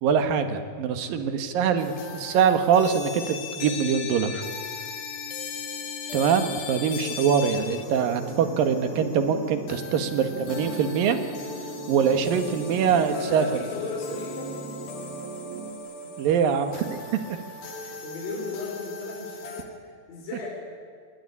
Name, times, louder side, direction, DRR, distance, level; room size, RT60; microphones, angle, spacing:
voice 1, 0.0-4.4 6.1-11.2 11.9-13.5 16.2-17.0, right 7 dB, 75° right, 8 dB, 3.2 m, -23 dB
sound 1, 1.8-19.6, left 4 dB, 85° left, 4.3 m, -38 dB
sound 2, 6.2-15.7, right 4 dB, 90° right, 3.4 m, -40 dB
voice 2, 13.0-14.5 16.0-16.1 17.2-17.4 17.8-20.5, left 3 dB, 45° left, -2 dB, 5.3 m, -36 dB
28.0 x 20.0 x 9.9 m, 2.1 s
omnidirectional pair, 4.1 m